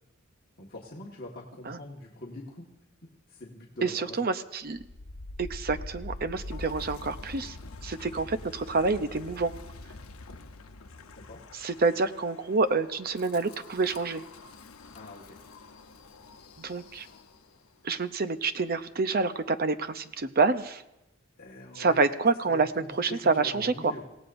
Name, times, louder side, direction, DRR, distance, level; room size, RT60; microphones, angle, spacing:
voice 1, 0.6-2.7 3.0-4.4 11.2-11.4 14.9-15.4 21.4-22.1 22.5-24.0, left 2 dB, 45° left, -3 dB, 1.6 m, -43 dB
voice 2, 3.8-4.8 5.4-7.6 7.8-9.5 11.6-14.2 16.6-17.1 17.8-20.8 21.8-23.9, right 4 dB, 45° right, 11 dB, 0.7 m, -27 dB
Wind, 4.7-17.7, left 2 dB, 85° left, 0.9 m, -45 dB
26.5 x 17.0 x 2.6 m, 0.94 s
head